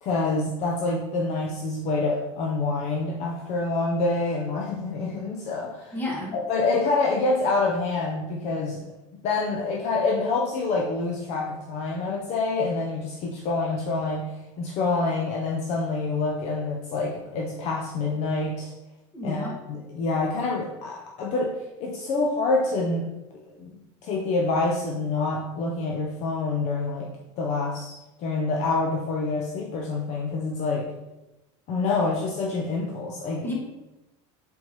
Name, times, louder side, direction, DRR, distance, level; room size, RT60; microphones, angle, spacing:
voice 1, 0.0-5.9 6.3-8.8 9.2-14.3 14.6-18.7 19.2-23.1 23.6-30.9 31.7-33.5, left 3 dB, 45° left, -1 dB, 0.6 m, -27 dB
voice 2, 5.9-6.3 19.1-19.5 33.4-33.5, left 1 dB, 10° left, -3 dB, 1.3 m, -31 dB
4.3 x 3.4 x 2.9 m, 0.98 s
supercardioid pair, 140°, 16 cm